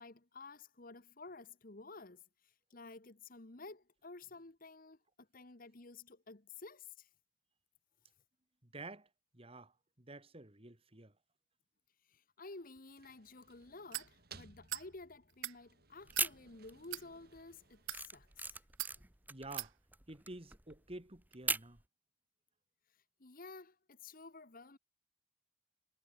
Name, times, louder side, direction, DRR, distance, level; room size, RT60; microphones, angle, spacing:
voice 1, 0.0-7.1 12.1-17.8 18.1-18.6 19.0-19.1 23.2-24.8, left 3 dB, 50° left, 1.5 m, -53 dB
voice 2, 8.6-9.1 9.3-11.1 19.3-19.7 20.1-21.8, right 2 dB, 30° right, 2.3 m, -50 dB
sound 1, 12.6-18.7, right 5 dB, 55° right, 7.7 m, -61 dB
sound 2, 13.9-14.1 14.7-14.9 15.3-15.6 16.1-16.3 16.8-17.1 17.7-18.0 18.8-19.0 19.6-19.7, right 17 dB, 85° right, 0.5 m, -41 dB
sound 3, 16.0-17.0 17.3-21.8, right 3 dB, 10° right, 1.0 m, -39 dB
head